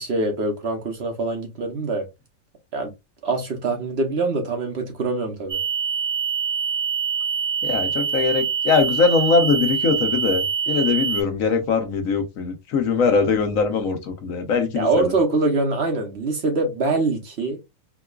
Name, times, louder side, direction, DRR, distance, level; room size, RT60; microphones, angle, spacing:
voice 1, 0.0-2.1 2.7-2.9 3.2-5.6 14.7-17.6, right 3 dB, 55° right, 1.0 m, -24 dB
sound 1, 5.5-11.2, right 7 dB, 30° right, 0.5 m, -24 dB
voice 2, 7.6-15.1, left 5 dB, 70° left, 1.2 m, -21 dB
4.7 x 2.3 x 2.3 m
omnidirectional pair, 1.5 m